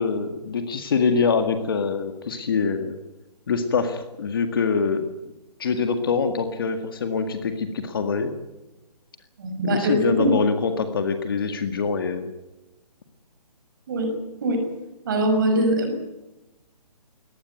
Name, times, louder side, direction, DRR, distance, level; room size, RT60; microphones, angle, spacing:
voice 1, 0.0-3.0 3.5-5.0 5.6-8.3 9.6-12.3, left 5 dB, 35° left, 7 dB, 1.8 m, -24 dB
voice 2, 9.4-10.3 13.9-14.1 14.4-14.7 15.1-16.0, right 1 dB, 30° right, 5 dB, 6.1 m, -22 dB
22.5 x 18.5 x 9.4 m, 1.0 s
hypercardioid pair, 175°, 21 cm